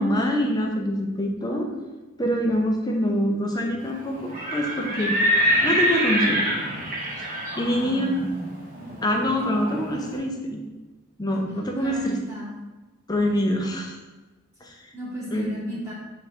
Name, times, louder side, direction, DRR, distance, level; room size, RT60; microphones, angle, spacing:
voice 1, 0.0-1.7 2.2-5.2 5.6-6.4 7.2-7.3 7.6-8.1 9.0-10.6 11.2-12.2 13.1-14.0 14.6-14.7 15.3-15.5, equal, 20° left, 1 dB, 0.5 m, -25 dB
Livestock farm animals working animals, 4.2-10.0, equal, 40° right, 0.9 m, -26 dB
voice 2, 7.7-8.6 9.7-9.8 11.3-11.4 11.8-12.5 14.9-15.9, equal, 15° right, -7 dB, 0.9 m, -34 dB
4.4 x 2.6 x 4.3 m, 1.2 s
head